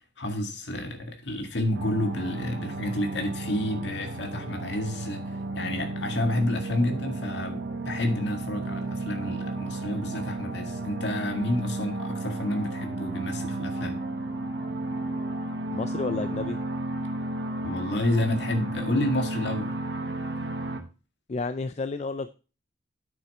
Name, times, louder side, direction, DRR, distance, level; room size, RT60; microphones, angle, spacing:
voice 1, 0.2-5.2 5.5-14.0 17.6-19.7, left 1 dB, 80° left, 1.9 m, -29 dB
sound 1, 1.7-20.8, right 2 dB, 70° right, 1.3 m, -33 dB
voice 2, 15.7-16.6 21.3-22.3, left 3 dB, 35° left, 0.4 m, -31 dB
8.6 x 6.8 x 4.2 m
head